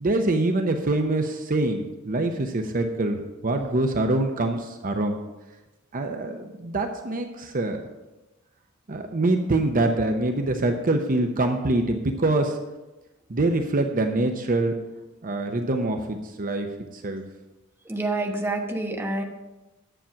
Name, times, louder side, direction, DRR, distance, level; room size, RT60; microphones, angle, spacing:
voice 1, 0.0-5.2 5.9-7.8 8.9-12.6 13.3-14.7 15.2-16.7 16.9-17.2, right 2 dB, 40° right, 5 dB, 0.7 m, -25 dB
voice 2, 17.8-19.2, right 2 dB, 10° right, 2 dB, 1.0 m, -27 dB
10.0 x 7.4 x 5.7 m, 1.1 s
head